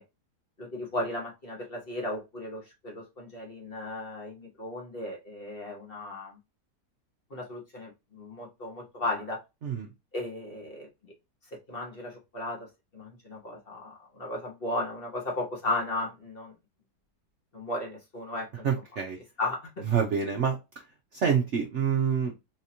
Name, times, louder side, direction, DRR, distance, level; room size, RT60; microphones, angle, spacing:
voice 1, 0.6-6.4 7.3-9.4 10.1-10.9 11.5-16.5 17.5-18.6 19.4-19.8, left 2 dB, 35° left, -1 dB, 1.2 m, -35 dB
voice 2, 18.6-19.2 19.9-20.6 21.1-22.3, right 7 dB, 55° right, 2 dB, 0.8 m, -26 dB
4.1 x 2.9 x 2.7 m, 0.23 s
omnidirectional pair, 1.8 m